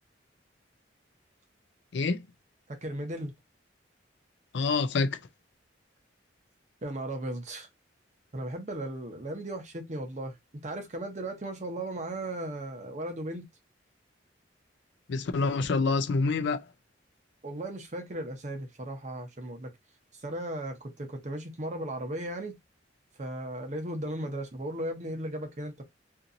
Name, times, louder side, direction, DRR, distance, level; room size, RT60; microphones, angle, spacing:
voice 1, 1.9-2.2 4.5-5.2 15.1-16.6, left 4 dB, 65° left, 0.4 m, -27 dB
voice 2, 2.7-3.3 6.8-7.7 8.3-10.4 10.6-13.5 17.4-19.7 20.1-22.6 23.2-25.8, right 1 dB, 40° right, 0.8 m, -36 dB
2.9 x 2.6 x 2.5 m
head